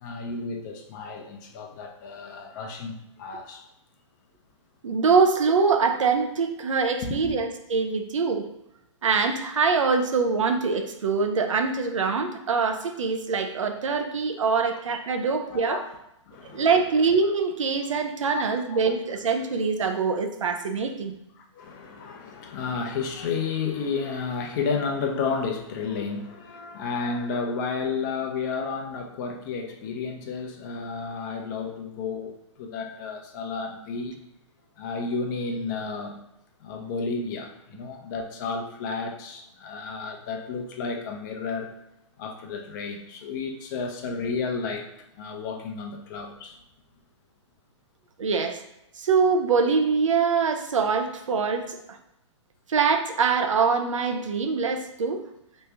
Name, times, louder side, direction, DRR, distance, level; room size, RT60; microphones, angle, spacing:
voice 1, 0.0-3.6 7.0-7.3 14.6-14.7 15.5-15.8 16.3-16.7 18.3-18.4 18.7-18.8 21.4-34.2 34.8-36.2 36.6-41.7 42.2-44.9 45.2-46.6, left 4 dB, 40° left, 2 dB, 0.7 m, -32 dB
voice 2, 4.8-8.5 9.0-15.8 16.5-21.1 48.2-48.6 49.0-51.8 52.7-55.2, right 5 dB, 90° right, 6 dB, 0.6 m, -24 dB
3.1 x 2.7 x 3.4 m, 0.84 s
hypercardioid pair, 145°, 16 cm